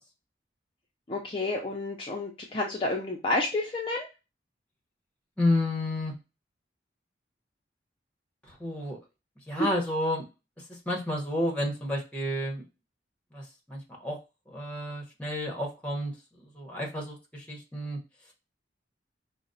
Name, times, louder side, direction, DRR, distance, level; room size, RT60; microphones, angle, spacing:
voice 1, 1.1-4.1 9.6-9.7, left 2 dB, 30° left, -1 dB, 0.4 m, -30 dB
voice 2, 5.4-6.1 8.5-9.0 9.5-10.3 10.7-12.6 13.3-14.2 14.5-16.1 16.4-18.0, left 1 dB, 5° left, -1 dB, 0.9 m, -31 dB
4.7 x 2.0 x 2.6 m, 0.27 s
head